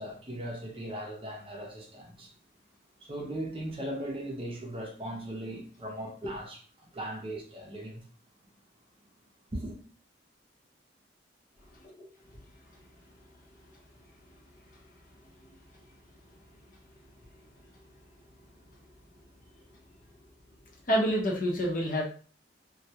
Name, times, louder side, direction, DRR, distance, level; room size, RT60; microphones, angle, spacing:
voice 1, 0.0-2.3 3.0-8.0 9.5-9.8, right 1 dB, 30° right, 0.6 m, -38 dB
voice 2, 20.9-22.0, equal, 45° left, 0.7 m, -28 dB
2.3 x 2.1 x 2.7 m
head